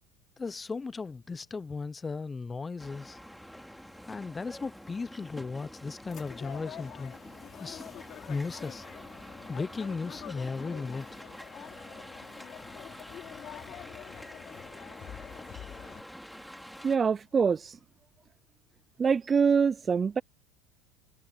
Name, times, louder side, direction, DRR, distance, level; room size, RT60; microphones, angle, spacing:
voice 1, 0.4-3.2 4.1-7.1 7.6-7.9 8.3-8.9 9.2-11.2, left 4 dB, 20° left, 1.0 m, -36 dB
sound 1, 2.8-17.0, equal, ahead, 3.7 m, -47 dB
sound 2, 6.1-16.0, left 11 dB, 45° left, 4.9 m, -47 dB
voice 2, 16.8-17.8 19.0-20.2, right 6 dB, 30° right, 0.4 m, -25 dB
hypercardioid pair, 80°, 0 cm